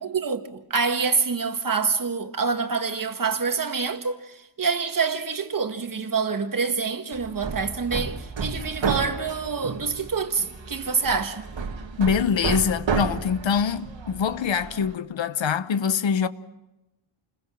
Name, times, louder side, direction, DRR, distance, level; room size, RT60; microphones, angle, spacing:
voice 1, 0.0-4.2 4.6-11.4, right 5 dB, 40° right, 1.6 m, -26 dB
Hammer, 7.1-14.9, right 5 dB, 60° right, 2.0 m, -32 dB
voice 2, 12.0-16.3, left 7 dB, 65° left, 1.0 m, -24 dB
29.0 x 21.5 x 6.3 m
wide cardioid pair, 160°, 50 cm